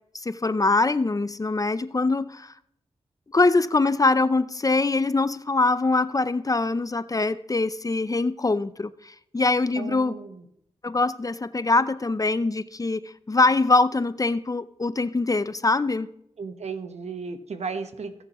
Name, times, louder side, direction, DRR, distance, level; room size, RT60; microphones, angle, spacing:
voice 1, 0.1-2.5 3.3-10.2 10.8-16.1, left 3 dB, 30° left, 0.5 m, -23 dB
voice 2, 9.8-10.5 16.4-18.2, right 5 dB, 65° right, 1.1 m, -35 dB
16.0 x 7.1 x 3.0 m
cardioid pair, 40°, 12 cm